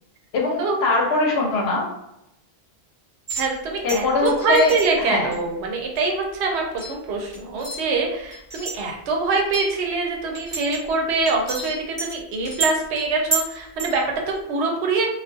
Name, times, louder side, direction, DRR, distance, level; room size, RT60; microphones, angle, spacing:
voice 1, 0.3-1.9 3.8-5.4, left 3 dB, 75° left, 0 dB, 0.9 m, -22 dB
sound 1, 3.3-3.5 3.9-4.9 5.3-5.4 6.0-6.1 6.8-7.0 7.3-7.8 8.3-8.8 9.3-9.8 10.3-10.9 11.3-12.2 12.5-13.5 13.8-14.0 14.3-14.4, right 4 dB, 25° right, 1.0 m, -30 dB
voice 2, 3.3-15.1, right 3 dB, 85° right, 1 dB, 0.9 m, -24 dB
2.4 x 2.2 x 2.5 m, 0.84 s
omnidirectional pair, 1.1 m